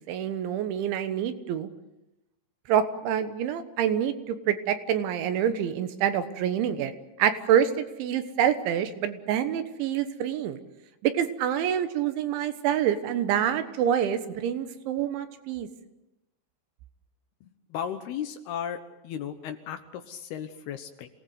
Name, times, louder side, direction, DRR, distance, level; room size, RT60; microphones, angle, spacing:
voice 1, 0.0-1.7 2.7-6.9 7.2-10.6 11.0-15.7, right 9 dB, 80° right, 9 dB, 3.6 m, -26 dB
voice 2, 17.7-21.1, left 9 dB, 70° left, 8 dB, 2.7 m, -35 dB
27.5 x 19.0 x 8.1 m, 0.95 s
omnidirectional pair, 5.4 m